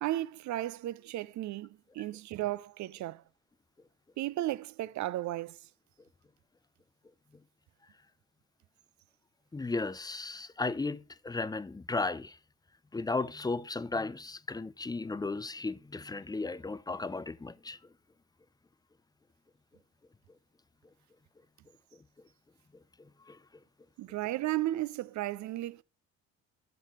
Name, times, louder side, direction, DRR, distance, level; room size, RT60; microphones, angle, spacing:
voice 1, 0.0-3.2 4.2-5.6 24.0-25.8, right 15 dB, 45° right, 0.6 m, -34 dB
voice 2, 9.5-12.4 12.9-17.8 23.3-23.4, left 3 dB, 10° left, 0.5 m, -35 dB
13.5 x 8.1 x 3.1 m
figure-of-eight pair, 50°, 42 cm